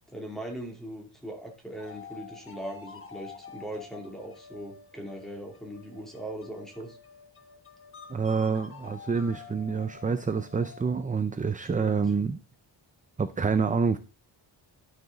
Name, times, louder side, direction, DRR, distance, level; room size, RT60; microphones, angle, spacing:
voice 1, 0.1-7.0 11.8-12.0, right 1 dB, ahead, 0 dB, 2.9 m, -40 dB
sound 1, 1.8-11.2, left 5 dB, 25° left, 1.3 m, -48 dB
voice 2, 8.1-12.4 13.2-14.0, right 5 dB, 20° right, 11 dB, 0.4 m, -27 dB
12.0 x 6.1 x 3.9 m, 0.31 s
wide cardioid pair, 145°, 47 cm